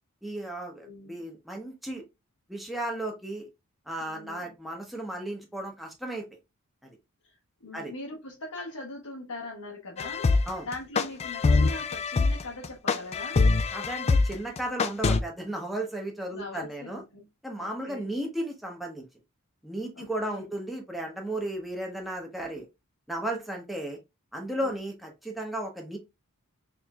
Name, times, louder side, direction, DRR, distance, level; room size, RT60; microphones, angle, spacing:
voice 1, 0.2-2.0 2.5-3.5 3.9-6.2 6.8-7.0 7.7-7.9 10.5-10.7 13.7-17.0 17.4-19.0 19.6-22.7 23.1-24.0 24.3-26.0, right 1 dB, ahead, 0.8 m, -34 dB
voice 2, 0.8-1.2 4.0-4.5 7.2-10.3 10.6-13.4 16.3-17.3 17.6-18.1 19.9-20.5 24.6-24.8, left 2 dB, 90° left, 1.0 m, -41 dB
sound 1, 10.0-15.2, left 3 dB, 30° left, 0.3 m, -23 dB
4.3 x 3.2 x 2.3 m
head